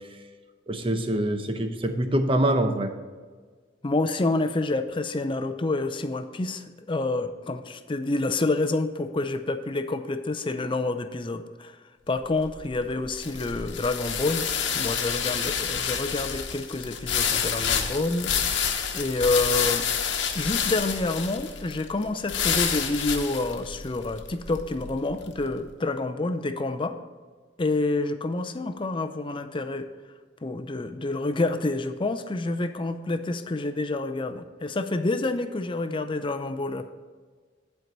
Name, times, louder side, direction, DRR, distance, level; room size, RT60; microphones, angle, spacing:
voice 1, 0.7-2.9, right 1 dB, 30° right, 7 dB, 0.8 m, -24 dB
voice 2, 3.8-11.7 12.1-14.5 14.7-18.6 18.9-19.9 20.3-27.0 27.6-29.9 30.4-36.9, left 2 dB, 30° left, 8 dB, 0.5 m, -28 dB
sound 1, 12.2-25.5, left 7 dB, 85° left, 1.0 m, -29 dB
10.5 x 4.6 x 5.3 m, 1.5 s
head